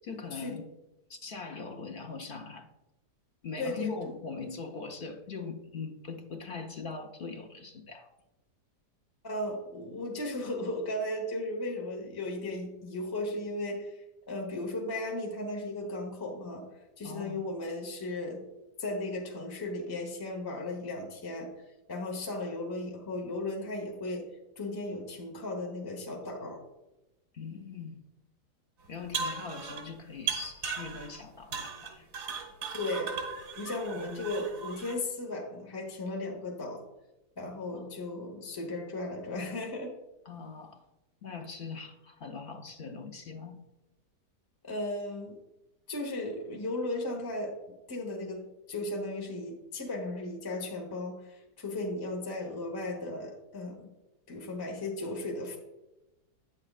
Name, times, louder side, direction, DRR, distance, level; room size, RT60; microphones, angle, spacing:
voice 1, 0.0-0.7 1.1-2.7 3.4-8.1 17.0-17.4 27.3-28.0 28.9-32.1 33.9-34.4 37.7-37.9 40.3-40.8 41.2-43.6, left 4 dB, 60° left, 3 dB, 0.5 m, -41 dB
voice 2, 3.6-4.1 9.2-16.7 17.0-18.4 18.8-21.5 21.9-24.3 24.6-26.6 32.7-33.1 33.6-36.8 37.4-39.9 44.6-45.4 45.9-47.5 47.9-53.9 54.3-55.6, left 2 dB, 15° left, 1 dB, 1.1 m, -36 dB
sound 1, 28.9-29.9 30.3-31.2 31.5-34.9, right 5 dB, 85° right, 2.1 m, -37 dB
9.6 x 7.6 x 2.4 m, 0.98 s
omnidirectional pair, 1.7 m